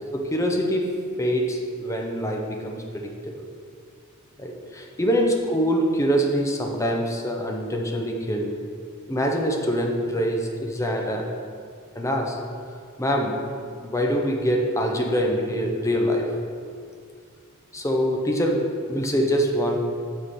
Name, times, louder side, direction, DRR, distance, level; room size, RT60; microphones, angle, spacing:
voice 1, 0.0-3.5 4.4-8.6 9.1-11.3 12.0-12.4 13.0-13.4 13.8-16.4 17.7-19.8, equal, 15° left, 1 dB, 0.6 m, -24 dB
7.9 x 5.1 x 4.2 m, 2.2 s
head